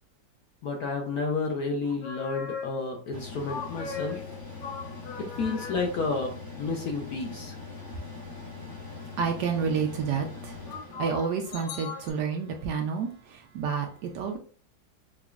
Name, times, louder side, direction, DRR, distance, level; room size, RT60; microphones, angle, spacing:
voice 1, 0.6-4.2 5.2-6.3 6.6-7.6, left 3 dB, 65° left, 1.0 m, -31 dB
sound 1, 1.8-3.0 3.5-6.0 10.7-12.1, left 5 dB, 85° left, 1.3 m, -38 dB
Mechanical fan, 3.1-11.5, left 4 dB, 35° left, 0.3 m, -42 dB
voice 2, 7.7-14.4, right 6 dB, 75° right, 1.0 m, -31 dB
4.9 x 2.3 x 2.3 m
omnidirectional pair, 2.1 m